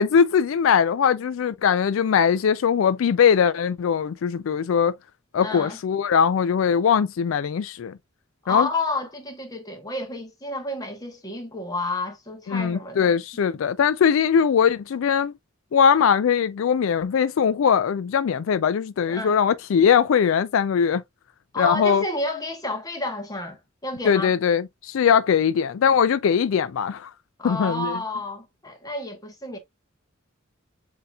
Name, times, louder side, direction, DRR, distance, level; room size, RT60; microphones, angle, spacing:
voice 1, 0.0-5.0 5.3-8.0 8.5-8.7 12.5-15.3 15.7-21.0 21.6-22.0 24.0-27.1 27.4-28.0, left 7 dB, 75° left, 0.4 m, -21 dB
voice 2, 5.4-5.8 8.4-13.1 19.1-19.4 21.5-24.3 27.4-29.6, left 2 dB, 20° left, 1.1 m, -30 dB
7.6 x 2.8 x 2.3 m
head